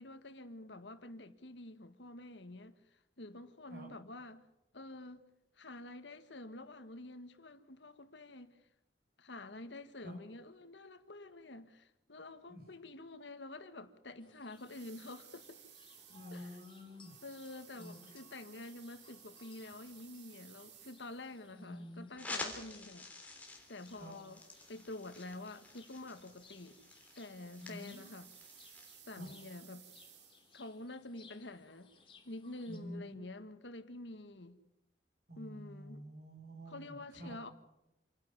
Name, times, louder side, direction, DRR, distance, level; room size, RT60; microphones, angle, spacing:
voice 1, 0.0-4.4 4.7-5.2 5.6-8.5 9.2-15.6 16.3-16.5 17.2-23.1 23.7-24.4 24.7-26.8 27.2-28.3 29.1-29.9 30.5-31.9 32.2-34.6 35.4-36.0 36.7-37.5, left 2 dB, 85° left, 1.7 m, -48 dB
sound 1, 14.2-32.8, left 5 dB, 30° left, 2.9 m, -64 dB
sound 2, 14.5-21.5 23.4-30.7, right 10 dB, 75° right, 2.6 m, -60 dB
voice 2, 16.1-17.1 17.7-18.2 21.5-22.1 23.9-24.1 27.6-28.0 29.1-29.3 32.7-33.1 35.3-37.4, equal, 55° right, 7.7 m, -49 dB
sound 3, 22.2-29.0, left 2 dB, 10° left, 3.3 m, -49 dB
28.0 x 11.5 x 9.4 m
head